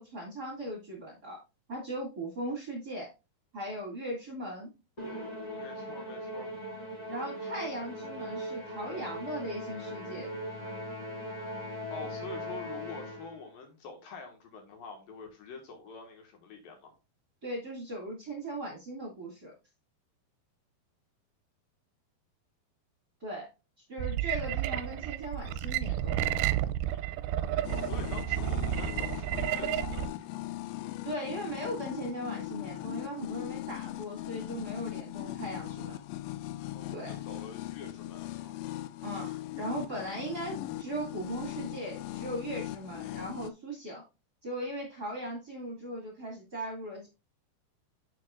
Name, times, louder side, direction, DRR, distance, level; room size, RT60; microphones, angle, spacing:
voice 1, 0.0-1.4 1.7-3.1 3.5-4.7 7.1-10.4 17.4-19.5 23.2-23.5 23.9-26.4 31.0-36.0 36.9-37.2 39.0-44.0 44.4-47.1, right 1 dB, 30° right, -2 dB, 2.2 m, -38 dB
Musical instrument, 5.0-13.5, equal, 20° left, 1.1 m, -39 dB
voice 2, 5.5-6.5 11.9-16.9 27.8-30.4 36.7-38.6, left 4 dB, 70° left, 4 dB, 3.1 m, -46 dB
sound 1, 24.0-30.1, right 13 dB, 80° right, 2.3 m, -31 dB
sound 2, 27.6-43.5, left 15 dB, 85° left, 2.4 m, -39 dB
9.6 x 6.5 x 2.4 m, 0.27 s
omnidirectional pair, 4.4 m